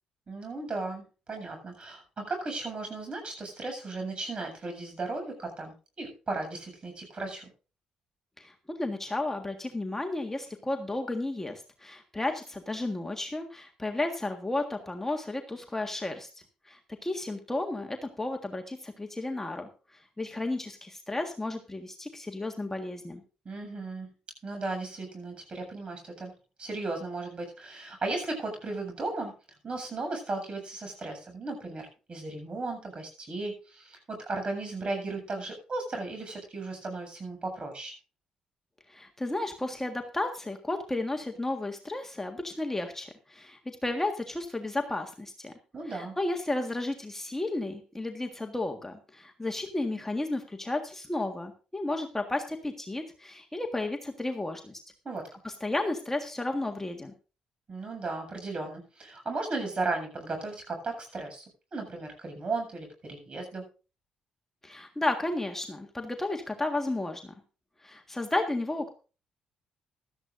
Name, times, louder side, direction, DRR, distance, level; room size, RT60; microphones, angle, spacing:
voice 1, 0.3-7.5 23.4-24.1 24.4-26.3 26.6-29.3 29.6-37.9 45.7-46.1 55.0-55.3 57.7-61.4 61.7-63.6, right 3 dB, 40° right, 4 dB, 7.5 m, -35 dB
voice 2, 8.4-16.3 16.7-23.2 38.9-45.5 45.9-54.8 55.4-57.1 64.6-67.3 67.8-68.9, left 2 dB, 15° left, 4 dB, 1.7 m, -33 dB
16.0 x 13.0 x 2.6 m, 0.35 s
supercardioid pair, 55°, 3 cm